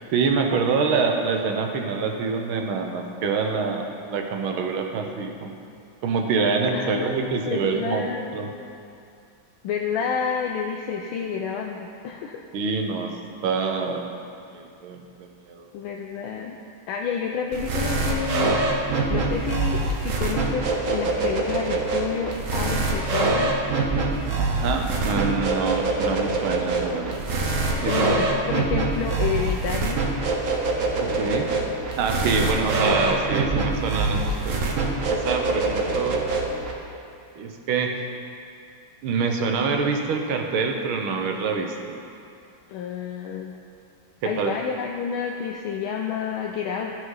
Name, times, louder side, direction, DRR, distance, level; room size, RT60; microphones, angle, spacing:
voice 1, 0.1-5.6 6.0-8.0 8.3-8.6 12.5-13.1 13.4-14.1 14.5-15.7 24.4-27.2 27.8-28.1 31.0-31.5 32.0-34.6 35.1-36.2 37.3-37.9 39.0-42.0 44.2-44.5, right 5 dB, 90° right, 3 dB, 1.7 m, -26 dB
voice 2, 6.7-8.3 9.6-12.4 15.7-16.6 16.9-18.6 18.8-23.5 27.9-30.0 42.7-43.5 44.2-47.0, left 6 dB, 85° left, 1 dB, 1.4 m, -29 dB
sound 1, 17.5-36.7, right 3 dB, 50° right, 1.1 m, -24 dB
13.5 x 5.0 x 5.5 m, 2.5 s
omnidirectional pair, 2.2 m